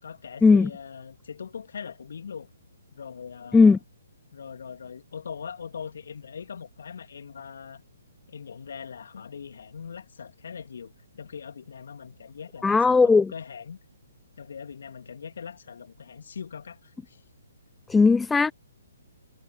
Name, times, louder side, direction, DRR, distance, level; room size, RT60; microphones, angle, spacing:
voice 1, 0.0-2.5 2.9-3.8 4.3-7.8 8.3-13.8 14.4-17.2, left 6 dB, 60° left, 3.0 m, -41 dB
voice 2, 12.6-13.3 17.9-18.5, left 4 dB, 5° left, 0.4 m, -17 dB
figure-of-eight pair, 130°, 0 cm